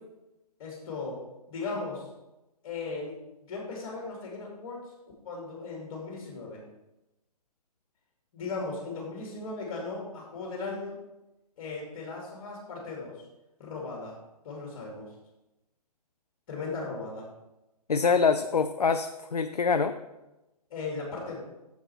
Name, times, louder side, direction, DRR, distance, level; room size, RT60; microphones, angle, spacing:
voice 1, 0.6-1.2 1.5-2.1 2.6-4.9 5.2-6.6 8.3-11.0 11.6-13.2 13.6-14.1 14.4-15.1 16.5-17.3 20.7-21.4, left 3 dB, 35° left, -1 dB, 2.5 m, -37 dB
voice 2, 17.9-20.0, left 5 dB, 70° left, 9 dB, 0.5 m, -25 dB
8.6 x 7.1 x 4.5 m, 0.99 s
figure-of-eight pair, 125°, 21 cm